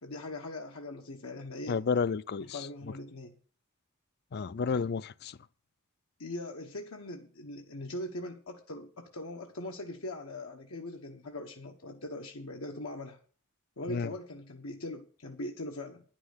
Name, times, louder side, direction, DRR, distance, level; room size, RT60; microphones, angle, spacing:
voice 1, 0.0-1.8 2.5-3.3 6.2-13.2 13.8-16.0, left 1 dB, 85° left, 1.3 m, -41 dB
voice 2, 1.7-2.6 4.3-5.4 13.9-14.1, left 5 dB, 50° left, 0.4 m, -31 dB
10.5 x 6.1 x 8.2 m
head